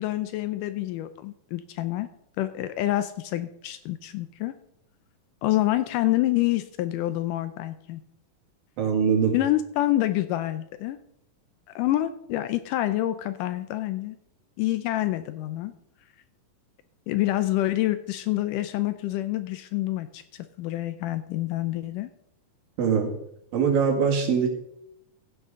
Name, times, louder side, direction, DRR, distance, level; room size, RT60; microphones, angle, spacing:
voice 1, 0.0-2.1 2.4-4.5 5.4-8.0 9.3-11.0 11.8-14.2 14.6-15.7 17.1-22.1, left 15 dB, 80° left, 11 dB, 2.0 m, -27 dB
voice 2, 8.8-9.4 22.8-23.1 23.5-24.5, right 6 dB, 75° right, 1 dB, 3.8 m, -22 dB
15.5 x 8.1 x 3.7 m, 0.77 s
omnidirectional pair, 4.1 m